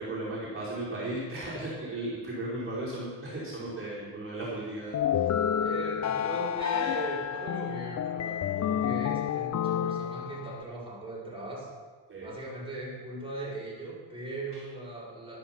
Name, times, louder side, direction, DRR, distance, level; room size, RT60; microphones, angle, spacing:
voice 1, 0.0-5.3 12.1-12.3 14.5-14.6, right 1 dB, 30° right, -7 dB, 4.9 m, -36 dB
sound 1, 4.9-10.6, left 9 dB, 40° left, 0.6 m, -29 dB
voice 2, 5.6-11.7 12.2-15.4, right 2 dB, 10° right, -6 dB, 5.4 m, -39 dB
12.5 x 12.0 x 6.0 m, 1.4 s
cardioid pair, 105°, 43 cm